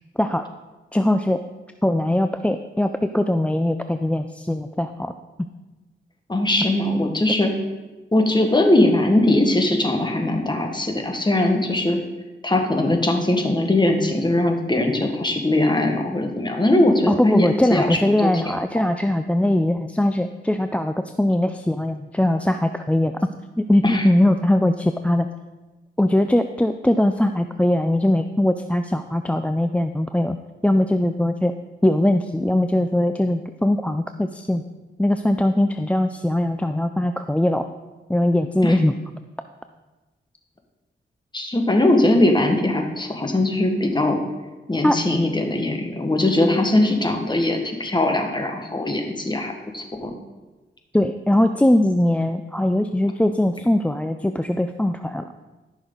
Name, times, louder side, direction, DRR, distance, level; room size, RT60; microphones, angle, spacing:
voice 1, 0.9-1.4 1.8-5.1 17.1-23.1 23.6-25.3 26.0-30.4 30.6-31.5 31.8-34.6 35.0-37.7 38.1-38.9 44.8-45.0 50.9-55.3, left 1 dB, 5° left, 8 dB, 0.4 m, -21 dB
voice 2, 6.3-7.5 8.1-12.0 12.4-18.8 23.8-24.1 38.6-38.8 41.3-44.2 44.7-50.1, left 1 dB, 20° left, 3 dB, 1.7 m, -20 dB
13.5 x 6.3 x 4.0 m, 1.1 s
cardioid pair, 60°, 21 cm